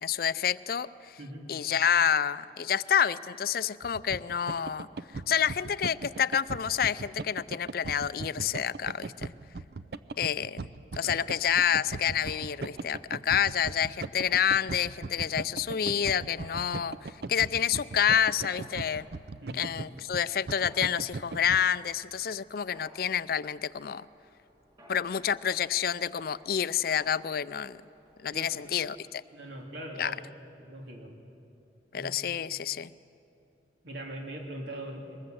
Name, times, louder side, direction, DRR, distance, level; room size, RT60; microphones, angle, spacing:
voice 1, 0.0-1.2 1.5-4.9 5.3-9.3 10.2-10.6 10.9-19.1 19.5-24.1 24.9-27.8 28.2-29.2 30.0-30.1 31.9-32.9, left 8 dB, 55° left, 17 dB, 0.4 m, -28 dB
voice 2, 1.2-1.6 11.0-11.2 19.4-19.6 28.3-28.7 29.3-31.1 31.9-32.2 33.8-35.2, right 1 dB, 85° right, 0 dB, 3.1 m, -41 dB
sound 1, 3.8-21.6, right 3 dB, 60° right, 0.5 m, -39 dB
Mechanisms, 12.1-28.9, equal, 25° right, 4.9 m, -58 dB
23.0 x 20.0 x 7.9 m, 2.9 s
head